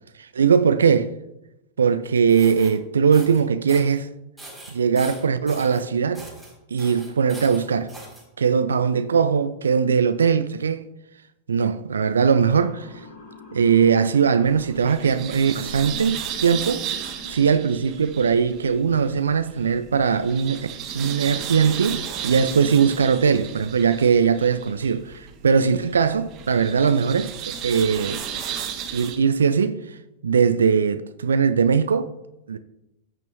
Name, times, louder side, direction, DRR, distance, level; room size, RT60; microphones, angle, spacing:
voice 1, 0.2-1.1 1.8-4.1 4.7-6.3 6.7-7.9 8.4-10.9 11.5-12.9 13.5-16.8 17.3-20.7 20.9-28.2 28.9-30.0 30.2-32.1 32.5-32.6, right 6 dB, 70° right, 0.4 m, -20 dB
sound 1, 2.2-2.7 3.1-3.4 3.7-4.0 4.4-5.8 6.1-6.5 6.8-8.2, right 1 dB, ahead, 3.7 m, -41 dB
Motor vehicle (road) / Siren, 12.5-16.6, left 4 dB, 50° left, 1.3 m, -46 dB
sound 2, 14.5-29.2, right 8 dB, 40° right, 1.4 m, -34 dB
15.5 x 6.1 x 3.0 m
figure-of-eight pair, 90°, 0 cm